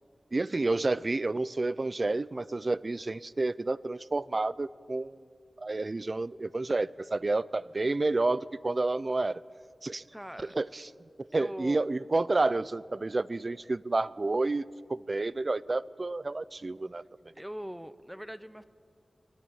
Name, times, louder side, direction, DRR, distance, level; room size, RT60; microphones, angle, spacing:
voice 1, 0.3-5.3 5.6-9.4 9.8-10.0 10.5-10.9 11.2-14.6 14.9-17.0, right 2 dB, 45° right, 18 dB, 0.6 m, -30 dB
voice 2, 10.1-10.5 11.3-11.8 17.3-18.6, equal, 5° right, 13 dB, 0.8 m, -41 dB
23.0 x 20.0 x 8.7 m, 2.2 s
wide cardioid pair, 65°, 0 cm